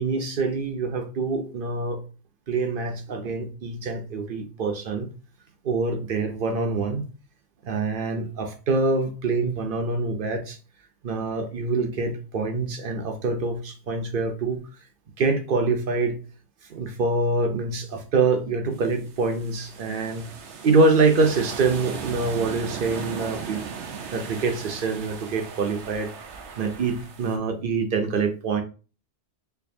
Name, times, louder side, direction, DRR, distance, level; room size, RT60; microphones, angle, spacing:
voice 1, 0.0-2.0 2.5-5.1 5.6-7.1 7.6-10.6 11.0-14.6 15.2-16.2 16.7-20.3 20.6-23.6 24.1-26.1 26.6-28.6, right 3 dB, 55° right, 6 dB, 0.8 m, -25 dB
sound 1, 18.8-27.4, right 6 dB, 90° right, 1.0 m, -37 dB
4.5 x 2.6 x 2.7 m, 0.35 s
omnidirectional pair, 1.1 m